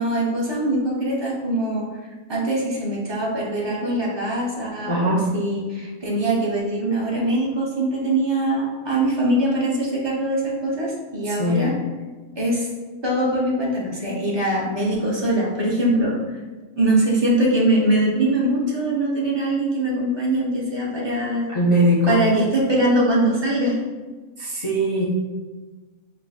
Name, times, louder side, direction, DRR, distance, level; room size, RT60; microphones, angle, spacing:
voice 1, 0.0-1.9 2.3-11.7 12.4-12.7 13.0-16.2 16.7-21.5 22.1-23.8, right 1 dB, 35° right, -5 dB, 0.4 m, -22 dB
voice 2, 4.9-5.2 11.3-11.7 21.5-22.2 24.4-25.1, equal, 55° left, -7 dB, 0.3 m, -20 dB
5.6 x 2.4 x 2.3 m, 1.3 s
omnidirectional pair, 1.5 m